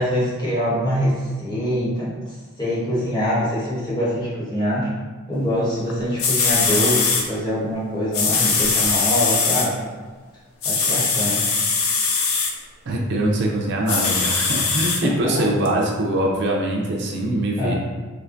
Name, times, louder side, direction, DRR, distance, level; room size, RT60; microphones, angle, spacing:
voice 1, 0.0-4.9 5.3-9.8 10.6-11.5 15.0-15.1 17.6-17.8, equal, 20° left, -8 dB, 1.1 m, -24 dB
sound 1, 5.9-6.0 6.2-7.2 8.1-9.7 10.6-12.5 13.9-15.0 15.7-15.8, left 4 dB, 70° left, 0.5 m, -21 dB
voice 2, 12.9-17.7, right 1 dB, 55° right, -1 dB, 0.5 m, -22 dB
3.4 x 3.1 x 2.5 m, 1.3 s
head